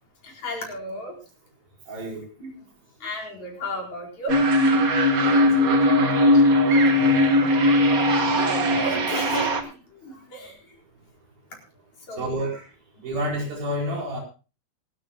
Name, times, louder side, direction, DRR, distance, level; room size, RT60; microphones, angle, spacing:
voice 1, 0.2-1.2 2.4-2.5 3.0-4.4 6.3-6.4 8.8-10.8 12.1-12.3, equal, 50° left, -1 dB, 5.8 m, -34 dB
voice 2, 1.9-2.2 5.1-5.9 12.2-12.6 13.0-14.2, equal, 80° right, -1 dB, 6.5 m, -30 dB
sound 1, 4.3-9.6, left 1 dB, 60° right, 0.9 m, -19 dB
26.0 x 12.5 x 2.2 m, 0.33 s
omnidirectional pair, 4.1 m